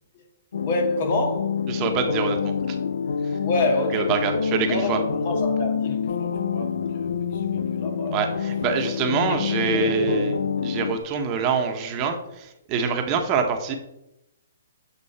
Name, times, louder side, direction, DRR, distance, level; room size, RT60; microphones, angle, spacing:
sound 1, 0.5-11.0, left 6 dB, 75° left, 0.6 m, -27 dB
voice 1, 0.6-1.5 3.4-8.2 9.2-10.3, left 2 dB, 50° left, 2.2 m, -28 dB
voice 2, 1.7-2.8 3.2-3.4 3.9-5.0 8.1-13.8, right 6 dB, 30° right, 1.3 m, -26 dB
8.6 x 5.9 x 4.4 m
hypercardioid pair, 140°, 0 cm